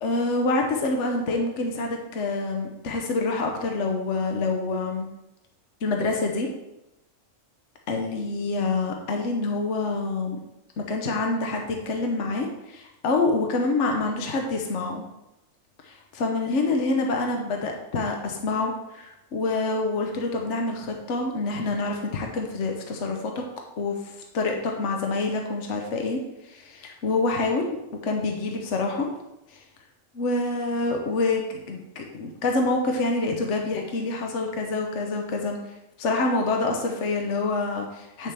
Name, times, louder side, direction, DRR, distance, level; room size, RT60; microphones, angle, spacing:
voice 1, 0.0-5.1 5.8-6.5 7.9-10.4 10.9-15.0 15.8-23.4 23.8-27.8 28.0-29.1 29.5-29.6 30.1-35.6 36.0-38.3, left 3 dB, 65° left, 2 dB, 1.2 m, -26 dB
8.4 x 6.6 x 3.4 m, 0.91 s
omnidirectional pair, 1.3 m